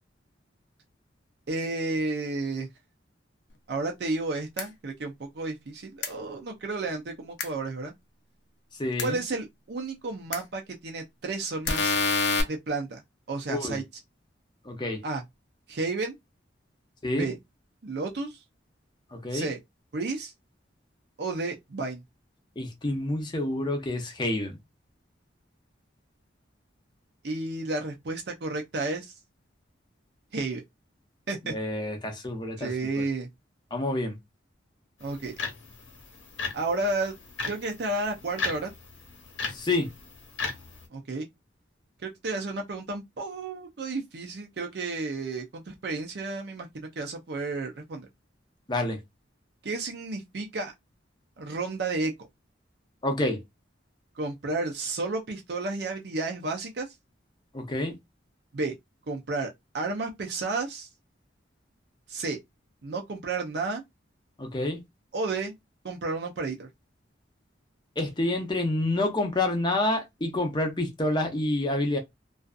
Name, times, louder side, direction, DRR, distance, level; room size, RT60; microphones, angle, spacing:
voice 1, 1.5-2.7 3.7-7.9 9.0-12.0 12.5-13.0 13.3-13.8 15.0-15.2 15.7-16.2 17.1-17.4 17.8-18.4 19.3-19.6 19.9-20.3 21.2-22.0 27.2-29.1 30.3-30.6 31.3-31.5 32.6-33.3 35.0-35.3 36.5-37.1 37.5-38.7 40.9-41.3 42.0-48.1 49.6-50.7 51.4-52.1 54.2-56.9 58.5-58.7 59.1-60.9 62.1-62.4 62.8-63.8 65.1-65.5 65.8-66.7, right 3 dB, 55° right, 0.5 m, -32 dB
sound 1, 4.6-4.7 6.0-6.1 7.4-7.5 9.0-9.1 10.3-10.4 11.7-12.4, left 4 dB, 65° left, 0.5 m, -25 dB
voice 2, 8.8-9.2 13.5-13.8 14.7-15.0 17.0-17.3 19.1-19.5 22.6-24.6 31.4-32.7 33.0-33.1 33.7-34.2 39.5-39.9 48.7-49.0 53.0-53.4 57.5-57.9 64.4-64.8 68.0-72.0, left 2 dB, 25° left, 0.6 m, -28 dB
sound 2, 35.0-40.9, left 4 dB, 85° left, 1.0 m, -37 dB
2.5 x 2.4 x 2.3 m
head